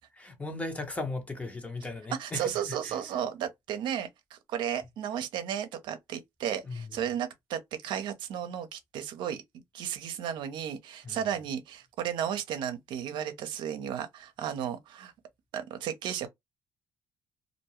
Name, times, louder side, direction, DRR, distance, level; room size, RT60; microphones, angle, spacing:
voice 1, 0.2-3.0 6.6-7.1 11.0-11.2, left 2 dB, 15° left, 1.0 m, -37 dB
voice 2, 2.2-9.4 9.7-15.1 15.5-16.3, right 9 dB, 70° right, 0.7 m, -34 dB
2.5 x 2.2 x 3.0 m
supercardioid pair, 85°, 8 cm